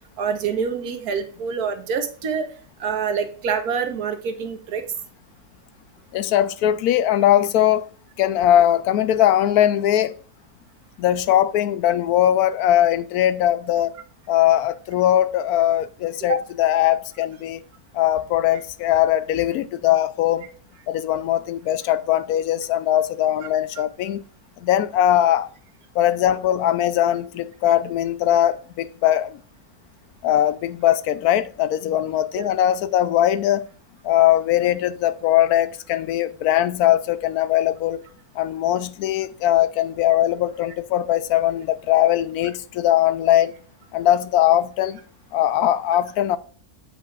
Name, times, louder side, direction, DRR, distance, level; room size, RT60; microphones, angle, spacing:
voice 1, 0.2-2.5 2.8-4.8 16.3-16.4 23.8-23.9 32.4-32.5, right 6 dB, 85° right, 1.5 m, -26 dB
voice 2, 6.1-7.9 8.2-10.1 11.0-14.0 14.3-17.6 17.9-20.5 20.9-24.2 24.6-25.5 25.9-29.4 30.2-33.7 34.0-38.0 38.4-43.5 43.9-45.0 45.3-46.4, left 12 dB, 85° left, 1.1 m, -20 dB
8.2 x 5.1 x 2.4 m
omnidirectional pair, 1.6 m